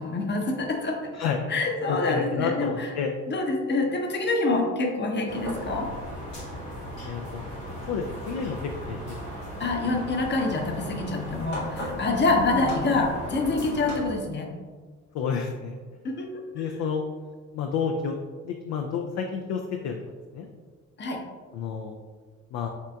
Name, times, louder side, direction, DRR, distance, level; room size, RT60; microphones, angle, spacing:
voice 1, 0.0-2.9 3.3-5.9 9.6-14.5 16.0-16.8 21.0-21.2, left 3 dB, 30° left, 2 dB, 0.8 m, -26 dB
voice 2, 1.9-3.1 7.0-7.4 7.9-8.6 8.9-9.0 15.1-15.8 16.5-17.0 17.5-18.1 18.4-20.0 20.3-20.5 21.5-22.0 22.5-22.7, left 6 dB, 45° left, 4 dB, 0.4 m, -29 dB
sound 1, 5.3-14.0, equal, 85° left, 1.3 m, -36 dB
5.7 x 3.3 x 2.3 m, 1.5 s
figure-of-eight pair, 45°, 38 cm